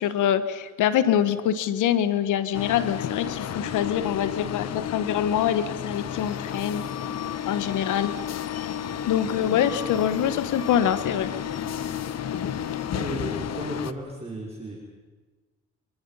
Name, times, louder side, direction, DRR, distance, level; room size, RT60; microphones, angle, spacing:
voice 1, 0.0-6.8 7.5-8.1 9.1-11.3, left 10 dB, 85° left, 13 dB, 1.3 m, -24 dB
sound 1, 2.5-13.9, left 9 dB, 60° left, 1.2 m, -32 dB
voice 2, 9.2-10.2 12.9-14.7, right 1 dB, 20° right, -3 dB, 5.0 m, -36 dB
26.0 x 26.0 x 5.6 m, 1.3 s
cardioid pair, 90°, 30 cm